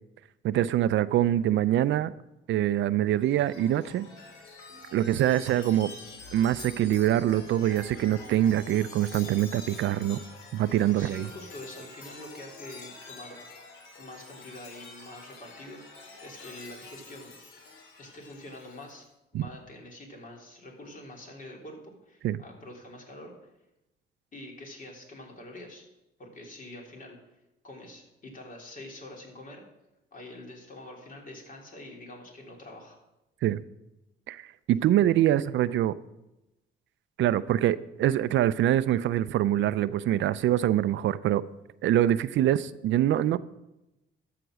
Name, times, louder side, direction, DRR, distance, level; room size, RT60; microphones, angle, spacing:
voice 1, 0.4-2.1 2.5-4.1 4.9-5.9 6.3-10.2 10.5-11.3 19.3-19.4 22.2-22.4 33.4-33.6 34.3-36.0 37.2-41.4 41.8-43.4, right 12 dB, 70° right, 16 dB, 0.4 m, -24 dB
Chime, 3.1-19.0, left 3 dB, 80° left, 3.0 m, -47 dB
voice 2, 10.9-13.4 14.0-17.3 18.0-19.1 19.3-23.3 24.3-25.8 26.2-27.2 27.6-29.6 30.1-33.0, left 1 dB, 45° left, 0 dB, 3.2 m, -45 dB
13.0 x 5.9 x 6.2 m, 0.94 s
cardioid pair, 90°, 20 cm